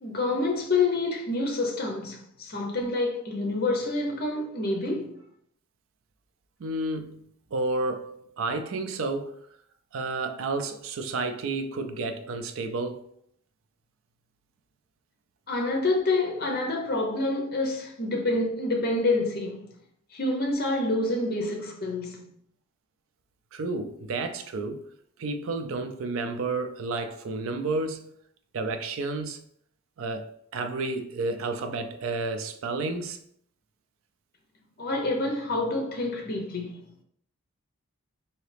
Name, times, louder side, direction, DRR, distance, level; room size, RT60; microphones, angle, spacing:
voice 1, 0.0-5.2 15.5-19.7 20.1-22.2 34.8-36.8, left 2 dB, 45° left, 0.8 m, -27 dB
voice 2, 6.6-9.4 9.9-13.0 23.5-24.8 25.2-28.1 28.5-29.4 30.0-33.2, right 3 dB, 70° right, 0.4 m, -31 dB
3.9 x 2.8 x 3.3 m
head